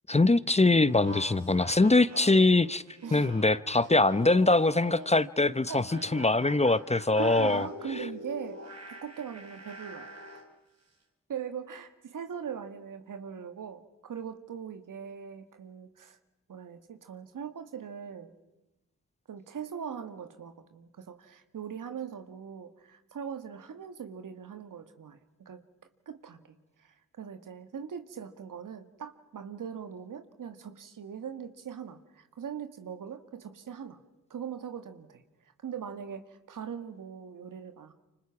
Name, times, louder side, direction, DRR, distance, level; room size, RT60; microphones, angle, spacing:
voice 1, 0.1-2.8 3.1-5.8 6.1-7.7, left 2 dB, 20° left, 0.8 m, -23 dB
sound 1, 0.9-5.2 5.6-10.5, equal, 55° right, 4.9 m, -45 dB
voice 2, 3.0-3.3 5.7-5.8 6.9-8.6 8.9-10.2 11.3-16.2 16.5-18.3 19.3-25.6 26.1-26.4 26.8-34.0 34.3-35.2 35.6-37.9, right 7 dB, 80° right, 2.0 m, -41 dB
28.0 x 25.5 x 6.0 m
cardioid pair, 45°, 32 cm